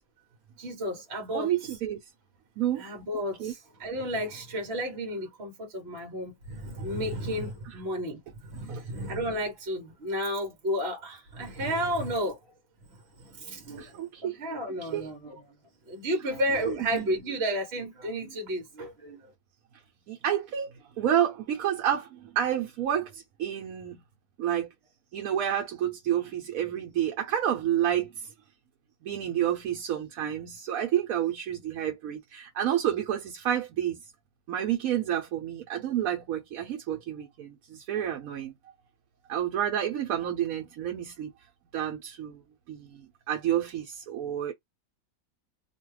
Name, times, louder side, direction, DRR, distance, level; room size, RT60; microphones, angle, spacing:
voice 1, 0.6-1.5 2.8-12.4 13.2-15.4 15.9-19.2, equal, 50° right, 1.1 m, -32 dB
voice 2, 1.3-2.0 2.6-2.8 3.4-3.5 7.7-7.8 8.7-8.8 13.8-14.4 14.8-15.1 16.7-17.1 20.1-20.7 21.0-24.0 24.4-24.7 25.1-28.1 29.0-34.0 34.5-38.5 39.3-41.3 41.7-42.4 42.7-44.5, right 10 dB, 75° right, 1.0 m, -29 dB
2.7 x 2.3 x 3.1 m
omnidirectional pair, 1.5 m